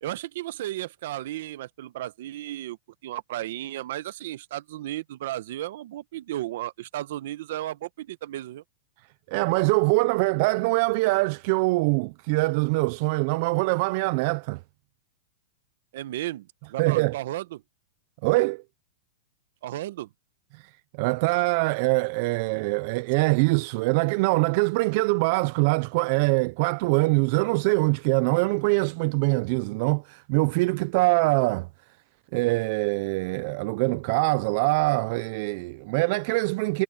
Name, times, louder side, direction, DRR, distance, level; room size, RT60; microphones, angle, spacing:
voice 1, 0.0-2.8 3.0-8.6 15.9-17.6 19.6-20.1, right 14 dB, 60° right, 0.9 m, -34 dB
voice 2, 9.3-14.6 16.8-17.2 18.2-18.6 20.5-20.7 21.0-31.7 32.3-36.8, right 25 dB, 40° right, 0.4 m, -23 dB
supercardioid pair, 165°, 0 cm